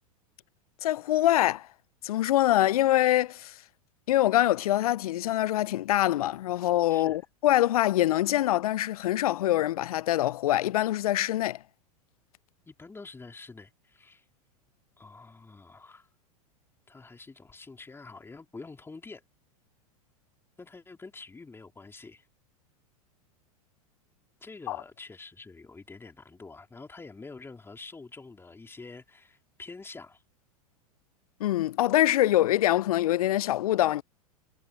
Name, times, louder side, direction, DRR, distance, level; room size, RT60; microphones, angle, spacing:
voice 1, 0.8-1.7 2.0-3.5 4.1-11.6 24.7-24.8 31.4-34.0, left 14 dB, 75° left, 0.4 m, -24 dB
voice 2, 6.9-7.2 12.7-14.2 15.0-16.1 16.9-19.2 20.6-22.3 24.4-30.2, left 3 dB, 10° left, 3.2 m, -47 dB
hypercardioid pair, 95°, 19 cm